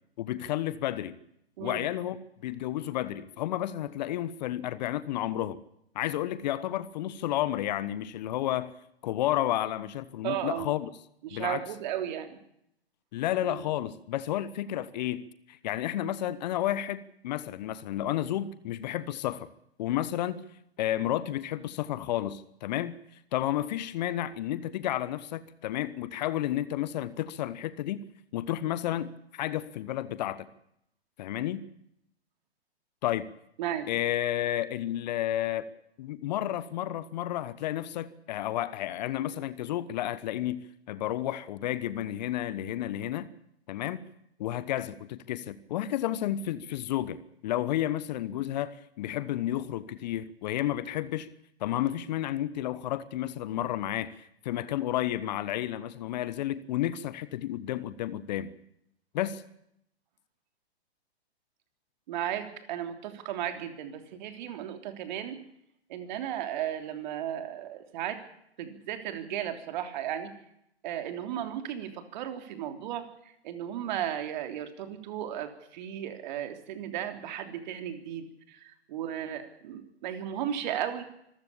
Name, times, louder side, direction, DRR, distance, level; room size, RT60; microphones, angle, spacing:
voice 1, 0.2-1.2 1.6-2.2 2.4-5.6 5.9-8.7 9.0-10.9 11.3-11.6 13.1-15.2 15.5-19.5 19.8-20.4 20.8-23.0 23.3-28.0 28.3-30.5 31.2-31.6 33.0-33.3 33.9-35.7 36.0-40.6 40.9-43.3 43.7-44.0 44.4-51.3 51.6-58.5 59.1-59.4, left 13 dB, 40° left, 1.2 m, -31 dB
voice 2, 10.2-10.7 11.2-12.4 13.4-13.6 33.6-33.9 62.1-65.4 65.9-68.2 68.6-70.3 70.8-81.0, right 10 dB, 45° right, 3.4 m, -35 dB
25.5 x 15.0 x 8.6 m
figure-of-eight pair, 125°, 33 cm